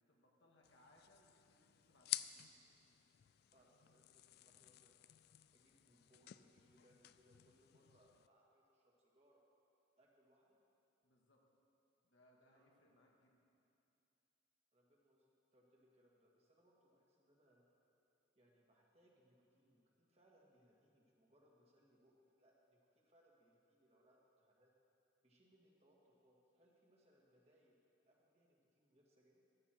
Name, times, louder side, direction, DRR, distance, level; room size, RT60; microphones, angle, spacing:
voice 1, 0.0-2.6 11.0-11.4 12.0-13.4, left 1 dB, 80° left, -1 dB, 1.9 m, -71 dB
sound 1, 0.6-8.3, left 14 dB, 55° left, 0.3 m, -51 dB
voice 2, 3.5-5.0 5.5-9.4 10.0-10.6 12.4-12.6 14.7-17.7 18.4-24.7 25.2-27.7 28.1-29.4, equal, 35° right, -3 dB, 2.1 m, -73 dB
14.0 x 12.5 x 4.5 m, 2.7 s
head